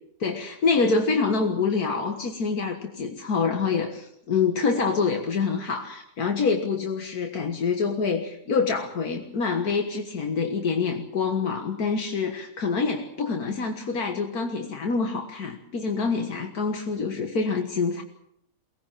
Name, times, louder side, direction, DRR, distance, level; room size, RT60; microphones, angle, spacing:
voice 1, 0.2-18.0, left 5 dB, 85° left, 4 dB, 2.1 m, -26 dB
23.5 x 18.5 x 7.4 m, 0.74 s
omnidirectional pair, 1.6 m